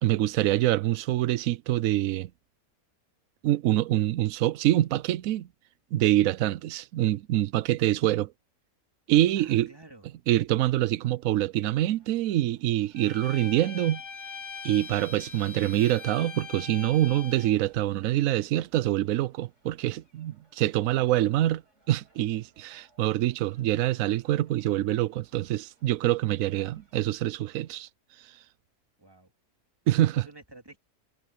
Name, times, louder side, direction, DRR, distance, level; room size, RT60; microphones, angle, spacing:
voice 1, 0.0-2.3 3.4-5.5 5.9-8.3 9.1-9.7 10.3-14.0 14.6-21.6 21.9-27.9 29.9-30.3, right 14 dB, 70° right, 0.9 m, -25 dB
voice 2, 9.4-10.0 20.9-21.1 26.5-26.8 29.0-29.3 30.2-30.8, right 2 dB, 15° right, 2.2 m, -51 dB
sound 1, 11.6-27.9, right 2 dB, 50° right, 6.5 m, -67 dB
Bowed string instrument, 12.9-17.6, left 5 dB, 80° left, 2.4 m, -42 dB
omnidirectional pair, 1.6 m